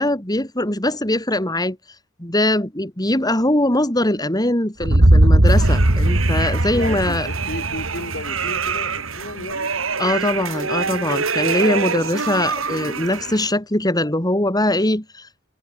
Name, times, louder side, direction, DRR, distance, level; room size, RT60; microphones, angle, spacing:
voice 1, 0.0-1.8 2.2-7.3 10.0-15.5, left 1 dB, 20° left, 4.7 m, -21 dB
sound 1, 4.8-8.9, right 1 dB, 65° right, 2.3 m, -17 dB
sound 2, 5.5-13.5, right 5 dB, 80° right, 6.4 m, -26 dB
voice 2, 6.7-9.7, left 2 dB, 55° left, 5.9 m, -33 dB
head